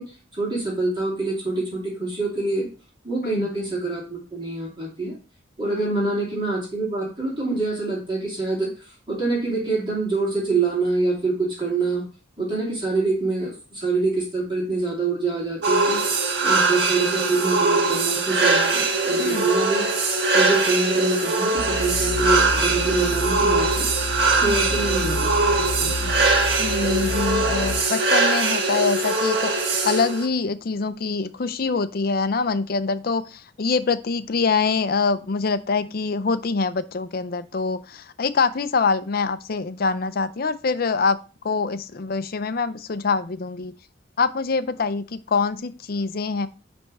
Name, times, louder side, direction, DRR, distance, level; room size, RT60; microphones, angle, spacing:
voice 1, 0.0-2.7 3.0-5.2 5.6-12.0 12.4-16.0 16.4-19.9 20.3-23.9 24.4-26.1, right 3 dB, 25° right, -5 dB, 2.7 m, -25 dB
voice 2, 5.7-6.1 19.2-19.5 24.4-24.6 26.6-41.2 41.4-43.7 44.2-46.5, left 4 dB, 50° left, 12 dB, 0.5 m, -25 dB
sound 1, 15.6-30.3, right 3 dB, 60° right, 1.4 m, -22 dB
sound 2, 21.6-27.8, left 3 dB, 85° left, 0.8 m, -30 dB
10.0 x 3.5 x 4.1 m, 0.34 s
head